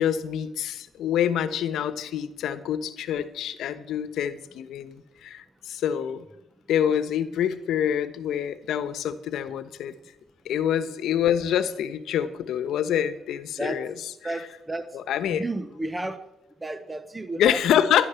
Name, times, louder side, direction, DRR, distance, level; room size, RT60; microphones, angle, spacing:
voice 1, 0.0-6.2 6.7-10.0 10.4-13.9 14.9-15.4 17.4-18.1, left 9 dB, 80° left, 12 dB, 1.1 m, -26 dB
voice 2, 14.2-14.9 15.3-16.2 16.6-17.6, right 2 dB, 15° right, 10 dB, 1.0 m, -32 dB
13.5 x 11.5 x 7.0 m, 0.89 s
cardioid pair, 90°, 0 cm